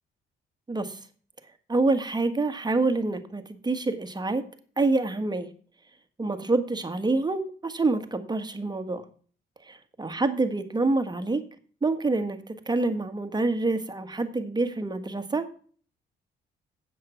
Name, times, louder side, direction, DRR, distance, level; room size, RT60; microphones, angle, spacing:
voice 1, 0.7-1.0 1.7-4.4 4.8-5.5 6.2-9.0 9.7-11.4 11.8-15.5, right 3 dB, 20° right, 8 dB, 1.5 m, -27 dB
9.7 x 7.6 x 5.7 m, 0.43 s
cardioid pair, 90°, 20 cm